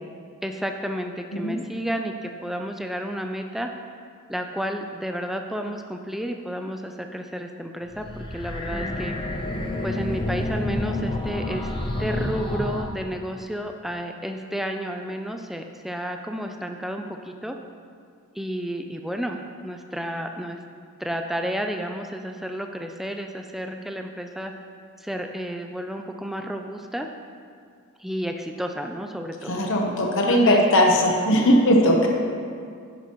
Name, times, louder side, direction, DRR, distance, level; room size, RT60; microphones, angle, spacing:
voice 1, 0.4-3.7 4.3-9.1 9.8-11.7 12.0-17.6 18.3-20.6 21.0-24.5 25.0-27.1 28.0-29.6 30.3-30.6, equal, ahead, 4 dB, 0.3 m, -31 dB
sound 1, 7.9-12.8, left 1 dB, 20° left, 0.7 m, -29 dB
voice 2, 29.5-32.1, equal, 60° left, 0 dB, 1.0 m, -19 dB
10.5 x 10.5 x 3.0 m, 2.2 s
head